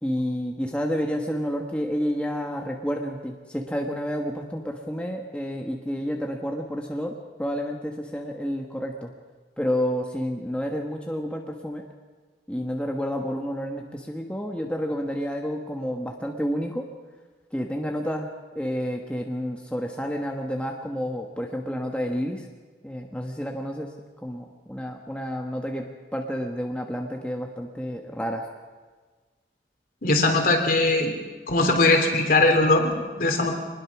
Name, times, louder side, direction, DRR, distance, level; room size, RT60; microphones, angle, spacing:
voice 1, 0.0-7.1 7.4-9.1 9.6-11.8 12.5-16.8 17.5-18.3 18.5-22.4 22.8-23.9 24.2-25.9 26.1-28.4, equal, 5° left, 1 dB, 1.4 m, -30 dB
voice 2, 30.0-31.1 31.5-33.5, left 2 dB, 55° left, 4 dB, 3.2 m, -20 dB
24.0 x 20.0 x 6.1 m, 1.4 s
head